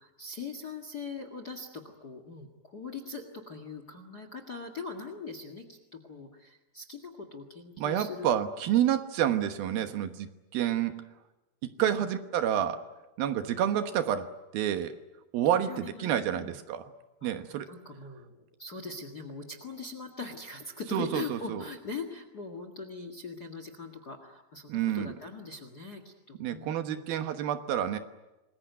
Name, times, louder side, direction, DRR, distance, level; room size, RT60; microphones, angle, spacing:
voice 1, 0.0-8.3 9.7-9.9 11.8-12.0 15.5-16.5 17.2-17.3 17.7-27.0, left 4 dB, 35° left, 8 dB, 1.6 m, -41 dB
voice 2, 7.8-10.9 11.6-12.8 13.2-14.9 15.3-16.8 17.2-17.7 20.9-21.6 24.7-25.1 26.4-28.0, right 10 dB, 75° right, 9 dB, 3.0 m, -29 dB
27.5 x 21.0 x 9.3 m, 1.0 s
omnidirectional pair, 4.5 m